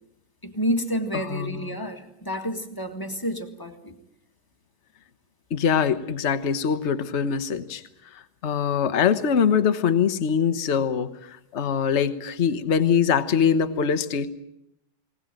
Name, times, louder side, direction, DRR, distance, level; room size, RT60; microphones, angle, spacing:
voice 1, 0.4-4.0, equal, 10° left, 6 dB, 1.7 m, -29 dB
voice 2, 1.1-1.8 5.5-7.8 8.1-14.3, left 7 dB, 40° left, 10 dB, 1.2 m, -23 dB
20.5 x 19.5 x 9.1 m, 0.80 s
omnidirectional pair, 2.2 m